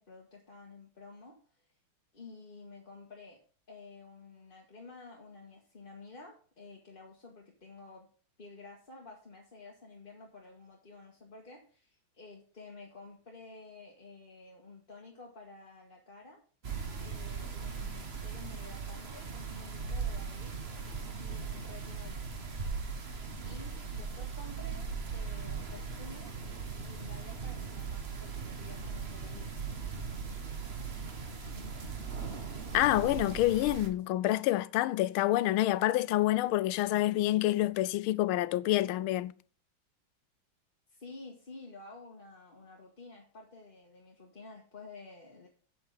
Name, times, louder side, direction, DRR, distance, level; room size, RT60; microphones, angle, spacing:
voice 1, 0.0-1.4 2.1-3.4 3.7-8.1 8.4-16.4 17.0-20.5 21.2-22.2 23.4-26.3 26.8-29.5 40.9-45.5, left 3 dB, 30° left, 1.5 m, -51 dB
sound 1, 16.6-33.9, right 5 dB, 35° right, 1.3 m, -39 dB
voice 2, 32.7-39.3, left 15 dB, 80° left, 1.4 m, -27 dB
8.3 x 7.9 x 4.0 m
omnidirectional pair, 2.3 m